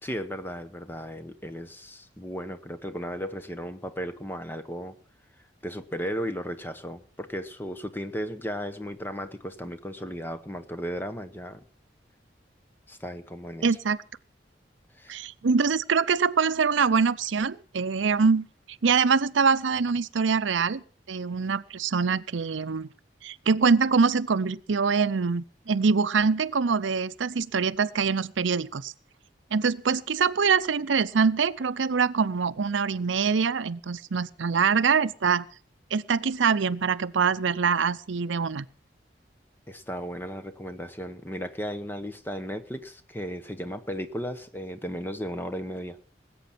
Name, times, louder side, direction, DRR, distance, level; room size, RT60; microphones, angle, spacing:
voice 1, 0.0-5.0 5.6-11.6 12.9-13.7 14.9-15.2 39.7-46.0, equal, 10° left, 9 dB, 0.9 m, -35 dB
voice 2, 13.6-14.0 15.1-18.4 18.8-20.8 21.1-22.9 23.2-28.9 29.5-35.4 35.9-38.7, right 5 dB, 90° right, 16 dB, 0.6 m, -24 dB
19.5 x 8.6 x 5.9 m, 0.42 s
head